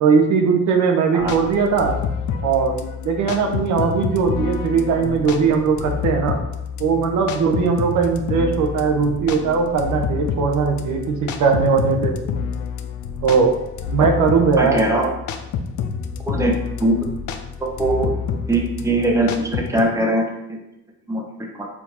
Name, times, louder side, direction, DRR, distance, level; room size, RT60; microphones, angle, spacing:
voice 1, 0.0-1.9 2.4-2.7 3.0-6.4 6.8-12.1 13.2-13.6 13.9-14.8, right 5 dB, 75° right, 3 dB, 0.7 m, -19 dB
sound 1, 1.2-19.8, left 6 dB, 75° left, 0.5 m, -28 dB
voice 2, 14.6-15.1 16.3-16.5 16.8-17.0 17.6-18.1 18.5-20.6 21.1-21.7, right 2 dB, 10° right, 0 dB, 0.8 m, -21 dB
4.2 x 2.7 x 4.2 m, 0.86 s
cardioid pair, 90°, 30 cm